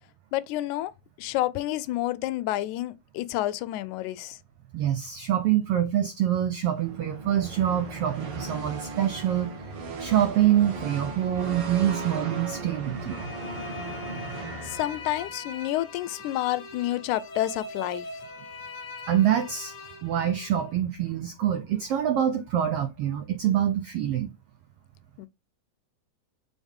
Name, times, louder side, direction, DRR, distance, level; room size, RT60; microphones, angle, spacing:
voice 1, 0.3-0.9 1.2-4.4 14.6-18.1 25.2-25.3, left 15 dB, 85° left, 2.0 m, -29 dB
voice 2, 4.7-9.5 10.0-13.2 19.1-19.7 20.0-24.3, right 11 dB, 85° right, 1.3 m, -25 dB
sound 1, 6.7-15.4, right 3 dB, 55° right, 2.1 m, -37 dB
sound 2, 13.1-20.8, left 4 dB, 55° left, 1.2 m, -42 dB
7.1 x 3.7 x 3.6 m
omnidirectional pair, 3.4 m